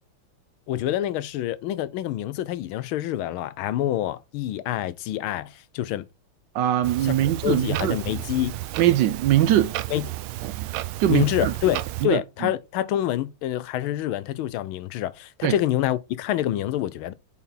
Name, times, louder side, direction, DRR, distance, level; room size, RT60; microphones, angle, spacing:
voice 1, 0.7-6.0 7.0-8.5 9.9-10.1 11.1-17.1, left 12 dB, 85° left, 1.4 m, -27 dB
voice 2, 6.5-8.0 8.8-9.8 10.4-10.7 11.0-11.5 12.1-12.2 15.4-15.6, right 12 dB, 75° right, 1.1 m, -21 dB
Clock, 6.8-12.1, right 15 dB, 90° right, 1.4 m, -32 dB
8.1 x 4.2 x 3.8 m
omnidirectional pair, 2.2 m